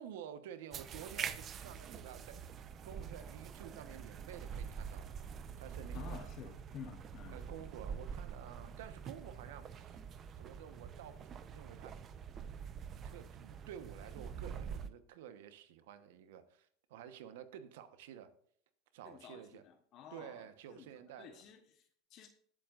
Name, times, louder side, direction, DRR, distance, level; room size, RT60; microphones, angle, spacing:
voice 1, 0.0-2.4 2.8-5.2 5.6-6.3 7.3-9.9 10.4-12.0 13.0-18.3 18.9-19.6 20.1-21.4, right 9 dB, 80° right, 10 dB, 1.1 m, -51 dB
sound 1, 0.7-14.9, right 7 dB, 40° right, 0.8 m, -46 dB
voice 2, 5.9-7.4 19.0-20.9 21.2-22.3, left 7 dB, 50° left, 6 dB, 1.1 m, -52 dB
21.0 x 7.6 x 2.5 m, 0.63 s
supercardioid pair, 105°, 0 cm